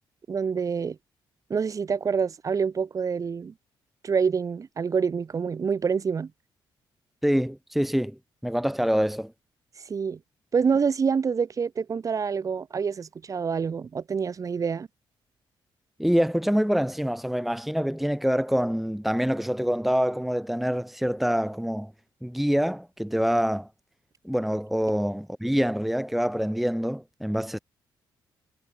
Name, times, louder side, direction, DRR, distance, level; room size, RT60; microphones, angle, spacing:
voice 1, 0.3-1.0 1.5-3.5 4.0-6.3 9.9-10.2 10.5-14.9, right 6 dB, 40° right, 3.1 m, -26 dB
voice 2, 7.2-8.2 8.4-9.3 16.0-21.9 22.2-23.7 24.3-27.6, equal, ahead, 1.9 m, -25 dB
cardioid pair, 115°, 9 cm